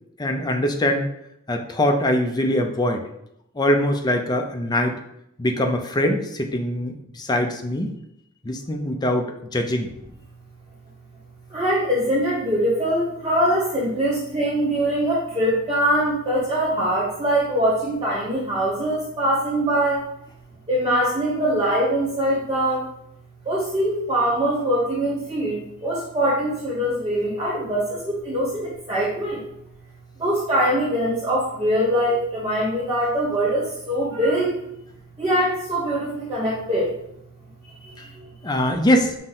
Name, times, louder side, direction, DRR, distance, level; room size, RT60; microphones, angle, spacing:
voice 1, 0.2-1.1 1.5-3.1 3.6-5.0 5.4-7.9 8.4-9.9 38.0-38.1 38.4-39.2, left 1 dB, 20° left, 4 dB, 0.4 m, -22 dB
voice 2, 11.5-20.0 20.7-22.9 23.4-29.4 30.2-34.6 35.2-36.9 37.8-38.2, right 1 dB, 25° right, -5 dB, 0.9 m, -23 dB
5.7 x 2.1 x 3.7 m, 0.78 s
head